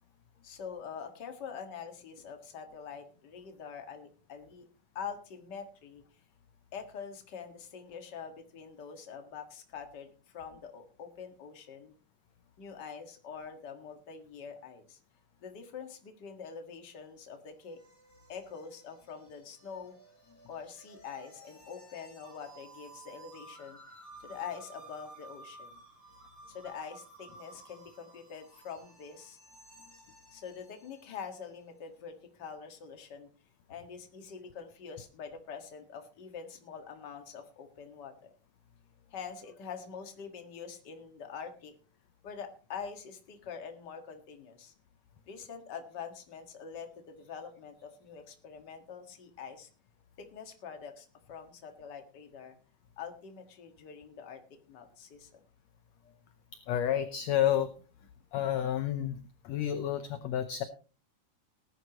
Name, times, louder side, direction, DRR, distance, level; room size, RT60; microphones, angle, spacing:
voice 1, 0.4-4.7 5.0-6.0 6.7-11.9 12.6-15.0 15.4-17.8 18.3-20.0 20.5-23.8 24.2-25.8 26.5-29.4 30.3-33.3 33.7-38.3 39.1-41.7 42.2-44.7 45.3-49.7 50.2-52.6 53.0-54.4 54.7-55.4 56.0-56.1, left 6 dB, 40° left, 5 dB, 1.9 m, -45 dB
sound 1, 17.0-31.6, right 2 dB, 5° left, 7.9 m, -55 dB
voice 2, 56.7-57.7 58.3-59.2 59.5-60.6, left 10 dB, 70° left, 10 dB, 1.8 m, -30 dB
19.0 x 11.0 x 3.0 m, 0.35 s
omnidirectional pair, 3.7 m